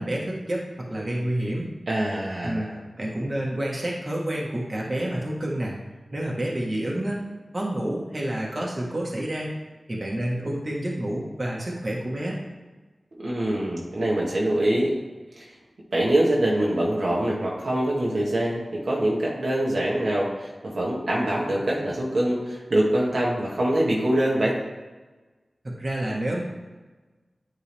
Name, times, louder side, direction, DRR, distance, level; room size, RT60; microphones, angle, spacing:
voice 1, 0.0-1.7 2.4-2.7 3.0-5.7 6.1-7.2 7.5-9.5 9.9-12.4 25.6-26.4, right 1 dB, 40° right, -3 dB, 1.5 m, -29 dB
voice 2, 1.9-2.8 13.2-14.9 15.4-15.5 15.9-24.6, right 1 dB, 70° right, -4 dB, 1.5 m, -24 dB
9.9 x 3.8 x 3.5 m, 1.2 s
cardioid pair, 50°, 0 cm